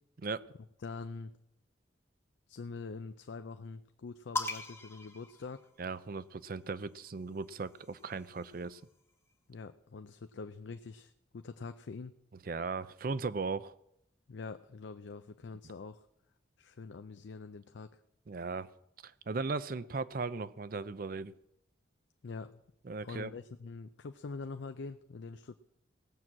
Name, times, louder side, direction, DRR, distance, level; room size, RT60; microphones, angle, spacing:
voice 1, 0.8-1.3 2.5-5.7 9.5-12.1 14.3-16.1 16.6-18.0 22.2-22.6 23.0-25.6, left 4 dB, 70° left, 9 dB, 0.5 m, -44 dB
sound 1, 4.4-6.2 7.3-8.9, left 2 dB, 15° left, 1.0 m, -41 dB
voice 2, 5.8-8.8 12.5-13.7 18.3-18.7 19.0-21.3 22.9-23.3, right 4 dB, 50° right, 16 dB, 0.5 m, -37 dB
18.0 x 6.2 x 7.4 m, 0.80 s
head